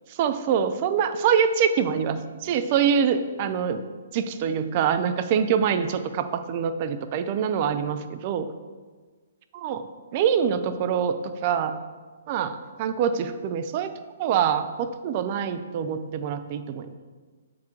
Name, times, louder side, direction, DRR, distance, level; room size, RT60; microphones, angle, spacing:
voice 1, 0.2-3.8 4.1-8.5 9.5-9.8 10.1-11.1 11.4-11.8 12.3-13.9 14.2-16.9, right 7 dB, 40° right, 10 dB, 0.4 m, -25 dB
7.0 x 4.7 x 3.8 m, 1.4 s
figure-of-eight pair, 125°, 0 cm